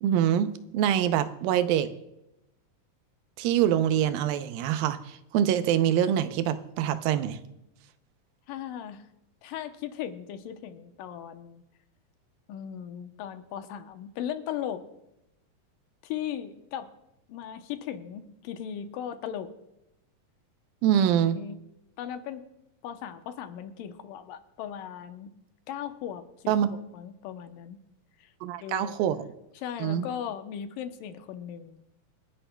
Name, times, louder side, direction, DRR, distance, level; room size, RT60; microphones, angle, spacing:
voice 1, 0.0-1.9 3.4-7.4 20.8-21.4 26.5-26.7 28.4-29.3 29.8-30.1, right 10 dB, 90° right, 11 dB, 2.5 m, -25 dB
voice 2, 8.5-9.0 9.4-11.6 12.5-14.8 16.0-16.9 17.3-19.5 20.8-21.6 22.0-22.4 22.8-25.3 25.7-27.8 28.2-28.3 28.6-29.0 29.6-31.8, left 9 dB, 80° left, 8 dB, 2.4 m, -37 dB
27.5 x 10.0 x 2.2 m, 0.89 s
omnidirectional pair, 4.1 m